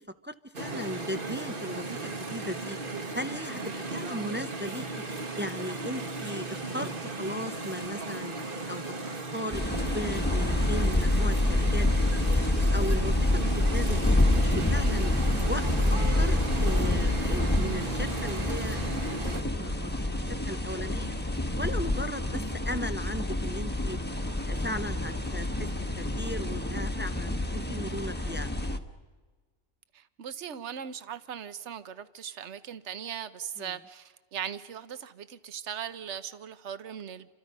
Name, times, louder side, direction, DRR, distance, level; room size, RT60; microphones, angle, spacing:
voice 1, 0.2-2.8 3.1-4.9 5.4-8.9 9.3-9.6 9.9-11.9 12.3-12.4 12.7-15.1 15.5-19.9 20.2-21.2 21.6-24.0 24.5-25.7 26.0-28.5 33.6-33.7, equal, 15° right, 9 dB, 0.4 m, -37 dB
sound 1, 0.5-19.4, right 3 dB, 40° right, 1.6 m, -36 dB
sound 2, 9.5-28.8, left 1 dB, 10° left, 1.1 m, -27 dB
voice 2, 29.9-37.3, right 8 dB, 60° right, 13 dB, 1.2 m, -39 dB
29.5 x 26.0 x 5.5 m, 1.4 s
omnidirectional pair, 1.4 m